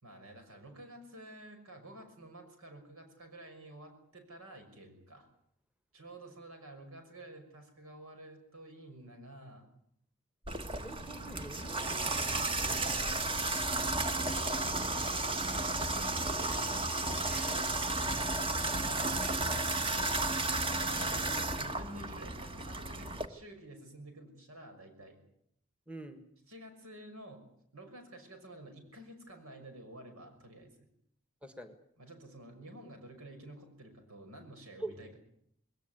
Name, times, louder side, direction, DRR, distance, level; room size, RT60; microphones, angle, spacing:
voice 1, 0.0-5.3 5.9-9.7 18.7-20.2 20.8-25.2 26.5-27.4 27.7-30.9 32.0-35.2, right 1 dB, 75° right, 6 dB, 6.0 m, -51 dB
Water tap faucet / Bathtub (filling or washing), 10.5-23.3, right 2 dB, 25° right, 1.4 m, -33 dB
voice 2, 10.8-12.9 17.1-17.7 21.0-21.3 25.9-26.2 31.4-31.7 34.8-35.0, right 2 dB, 5° right, 8 dB, 1.5 m, -46 dB
21.0 x 18.0 x 9.5 m, 0.71 s
head